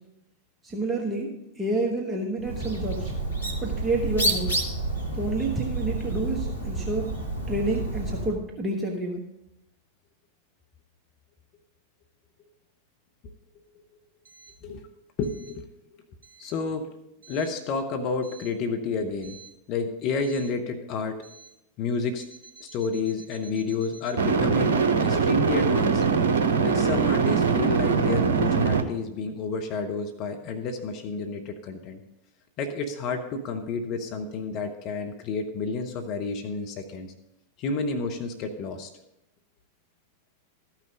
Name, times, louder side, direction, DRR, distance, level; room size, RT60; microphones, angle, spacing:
voice 1, 0.6-3.1 3.6-4.6 5.1-7.2 7.5-9.3, right 2 dB, 15° right, 0 dB, 1.4 m, -29 dB
Bird, 2.4-8.4, right 2 dB, 85° left, 1.6 m, -29 dB
voice 2, 15.2-15.6 16.4-16.9 17.3-19.4 19.7-21.2 21.8-22.2 22.6-26.0 26.6-32.0 32.6-37.1 37.6-38.9, left 4 dB, 40° left, 5 dB, 0.9 m, -30 dB
sound 1, 19.3-19.5 24.2-28.8, right 5 dB, 60° right, 0.9 m, -22 dB
13.5 x 5.8 x 5.2 m, 0.86 s
figure-of-eight pair, 90°, 0 cm